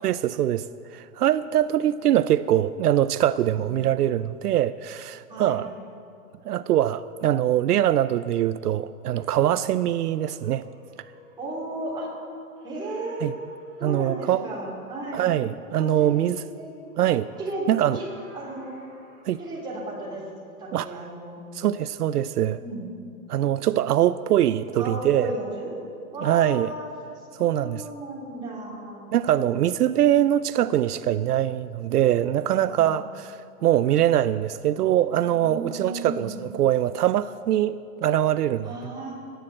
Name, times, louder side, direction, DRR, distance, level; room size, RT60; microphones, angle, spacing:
voice 1, 0.0-0.7 0.9-5.7 6.5-10.6 13.2-13.3 13.8-14.5 15.1-16.4 17.0-17.3 17.7-18.0 19.2-19.4 20.7-20.9 21.5-22.6 23.3-25.3 26.2-26.7 27.3-27.8 29.1-38.7, right 11 dB, 75° right, 15 dB, 0.6 m, -23 dB
voice 2, 5.3-5.7 11.4-12.1 12.6-13.3 13.8-15.3 15.7-16.7 17.4-18.0 18.3-18.8 19.4-20.2 20.6-21.4 22.6-22.9 24.8-25.8 26.1-26.9 27.2-29.0 29.5-29.6 32.5-33.0 35.3-36.4 38.6-39.2, right 1 dB, 10° right, -6 dB, 3.3 m, -35 dB
sound 1, 9.1-11.5 12.6-14.1 16.6-19.6, right 1 dB, 35° right, 5.0 m, -54 dB
15.5 x 10.5 x 7.8 m, 2.5 s
hypercardioid pair, 165°, 46 cm